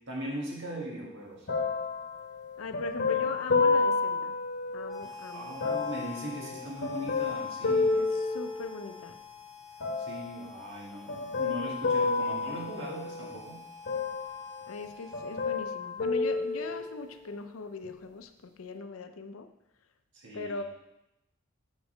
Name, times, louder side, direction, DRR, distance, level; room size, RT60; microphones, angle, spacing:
voice 1, 0.1-1.5 3.1-3.3 5.3-7.9 10.0-13.6 20.1-20.6, right 1 dB, 65° right, -3 dB, 1.9 m, -39 dB
sound 1, 1.5-5.1 5.6-9.1 9.8-10.5 11.1-13.4 13.9-14.9 15.1-17.2 17.8-17.9, left 4 dB, 55° left, 1.0 m, -30 dB
voice 2, 2.6-4.4 4.7-6.0 7.9-9.2 14.7-19.5 20.3-20.6, left 3 dB, 80° left, 8 dB, 0.5 m, -40 dB
Harmonica, 4.8-15.9, left 5 dB, ahead, 1.4 m, -49 dB
7.1 x 4.0 x 5.1 m, 0.89 s
head